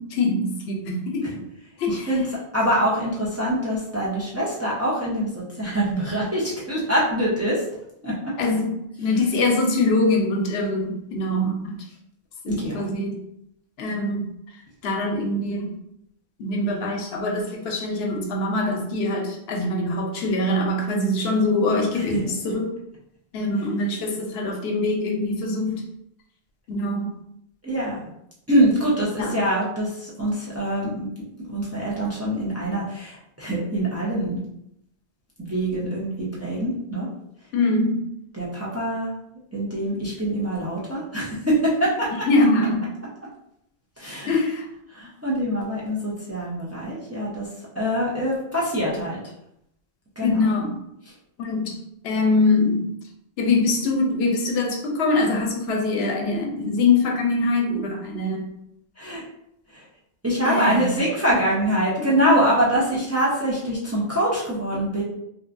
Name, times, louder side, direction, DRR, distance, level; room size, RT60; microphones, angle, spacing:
voice 1, 0.0-1.4 1.8-2.1 8.4-11.8 12.4-13.2 13.8-14.3 14.8-15.7 16.4-22.7 23.3-25.8 26.7-27.1 29.2-29.3 37.5-38.0 42.1-42.9 44.3-44.6 50.2-50.8 51.4-51.8 52.0-52.9 53.4-58.4 60.5-61.0 62.2-62.4, left 2 dB, 85° left, 1 dB, 0.8 m, -23 dB
voice 2, 1.9-7.6 8.0-8.3 9.0-9.2 12.5-12.9 21.9-22.2 27.6-28.0 28.5-31.1 31.4-34.4 35.4-37.1 38.3-39.1 39.5-42.1 44.0-44.4 44.9-47.5 47.8-49.2 50.2-50.5 51.1-51.2 59.0-59.2 59.7-59.8 60.2-65.0, right 1 dB, 20° right, -7 dB, 0.5 m, -24 dB
3.0 x 2.2 x 2.5 m, 0.79 s
omnidirectional pair, 1.0 m